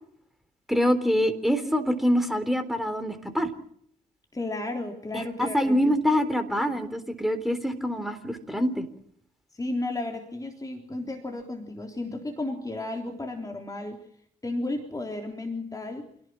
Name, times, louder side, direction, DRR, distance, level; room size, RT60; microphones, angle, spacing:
voice 1, 0.7-3.5 5.1-8.9, equal, ahead, 9 dB, 3.7 m, -25 dB
voice 2, 4.3-5.8 6.5-6.6 9.5-14.0 14.4-16.1, left 2 dB, 15° left, 2 dB, 3.6 m, -33 dB
28.0 x 18.0 x 7.6 m, 0.68 s
figure-of-eight pair, 40°, 20 cm